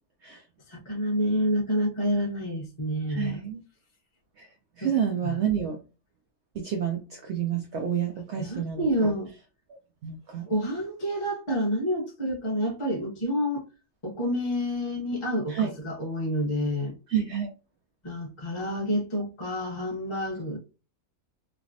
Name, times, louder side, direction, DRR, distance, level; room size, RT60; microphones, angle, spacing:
voice 1, 0.7-3.4 4.8-4.9 8.4-9.3 10.5-13.6 14.0-16.9 18.0-20.6, equal, 25° left, 0.8 m, -28 dB
voice 2, 3.1-3.6 4.4-4.5 4.8-5.8 6.6-9.1 9.7-10.5 15.5-15.7 17.1-17.5, right 9 dB, 70° right, 0.6 m, -29 dB
3.2 x 2.0 x 2.5 m
omnidirectional pair, 1.6 m